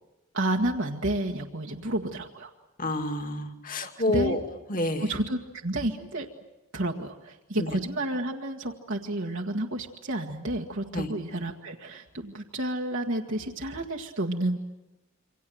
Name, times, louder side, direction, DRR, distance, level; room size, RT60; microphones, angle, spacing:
voice 1, 0.3-2.5 3.8-4.4 5.0-6.3 6.7-14.6, right 1 dB, 60° right, 0 dB, 1.7 m, -30 dB
voice 2, 2.8-4.4 4.7-5.1 7.6-7.7 10.9-11.1, left 1 dB, 40° left, 6 dB, 2.5 m, -28 dB
28.0 x 25.5 x 7.8 m, 1.0 s
head